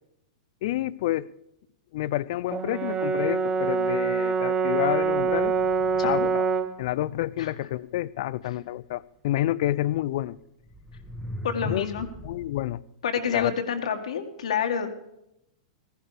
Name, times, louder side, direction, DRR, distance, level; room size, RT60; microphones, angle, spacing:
voice 1, 0.6-1.3 1.9-5.5 6.0-6.5 6.8-10.4 11.6-11.9 12.2-12.8 13.3-13.5, left 15 dB, 60° left, 0.5 m, -29 dB
Brass instrument, 2.5-6.8, right 5 dB, 25° right, 1.1 m, -25 dB
sound 1, 5.0-6.6 9.6-9.7 10.6-12.5, equal, ahead, 1.5 m, -40 dB
voice 2, 11.4-12.1 13.0-14.9, left 7 dB, 75° left, 1.9 m, -28 dB
15.5 x 11.5 x 5.1 m
hypercardioid pair, 115°, 3 cm